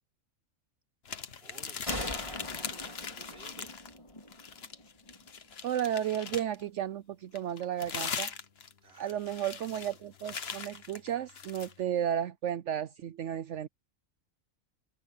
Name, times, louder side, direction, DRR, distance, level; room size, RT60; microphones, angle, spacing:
sound 1, 1.0-4.0 4.3-6.6 7.3-11.7, left 6 dB, 50° left, 1.3 m, -40 dB
voice 1, 1.4-3.7 8.8-9.5, right 2 dB, 45° right, 4.8 m, -55 dB
sound 2, 1.9-5.4, left 1 dB, 20° left, 3.6 m, -41 dB
voice 2, 5.6-8.3 9.0-13.7, right 10 dB, 65° right, 0.9 m, -33 dB
omnidirectional pair, 1.4 m